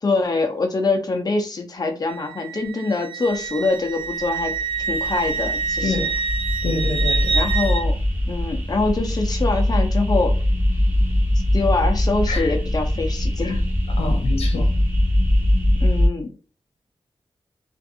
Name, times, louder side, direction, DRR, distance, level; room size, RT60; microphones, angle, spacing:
voice 1, 0.0-4.5 4.9-6.1 7.3-7.9 8.3-10.3 11.5-13.6 14.2-14.3 15.8-16.3, left 3 dB, 40° left, 0.7 m, -24 dB
Wind instrument woodwind instrument, 2.1-7.8, right 5 dB, 55° right, 0.5 m, -27 dB
sound 1, 4.1-16.1, left 1 dB, 20° right, 0.8 m, -21 dB
voice 2, 6.6-7.4 12.3-12.6 13.4-13.6 13.9-14.7, left 3 dB, 85° left, 0.5 m, -27 dB
2.6 x 2.5 x 2.6 m
wide cardioid pair, 80°, 10 cm